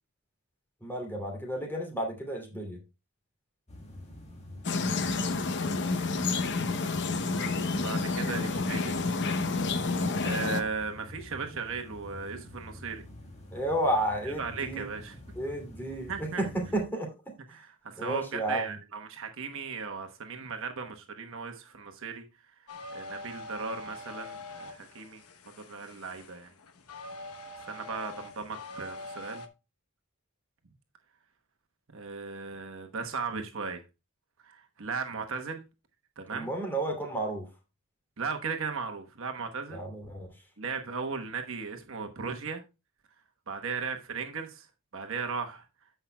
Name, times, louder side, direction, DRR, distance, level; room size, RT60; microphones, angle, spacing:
voice 1, 0.8-2.8 13.5-14.9 15.3-17.3 18.0-18.8 36.3-37.5 39.7-40.3, right 1 dB, 10° left, 2.6 m, -32 dB
sound 1, 3.7-16.9, left 1 dB, 30° left, 2.0 m, -47 dB
sound 2, 4.6-10.6, left 3 dB, 55° left, 0.8 m, -29 dB
voice 2, 7.3-9.1 10.2-13.0 14.3-15.2 16.1-16.5 17.5-22.2 22.9-26.5 27.7-29.4 31.9-33.8 34.4-35.7 36.2-36.5 38.2-39.8 40.6-42.6 43.5-44.7 44.9-45.6, right 5 dB, 65° right, 1.1 m, -37 dB
sound 3, 22.7-29.5, left 2 dB, 85° left, 1.0 m, -44 dB
14.5 x 5.7 x 2.2 m
head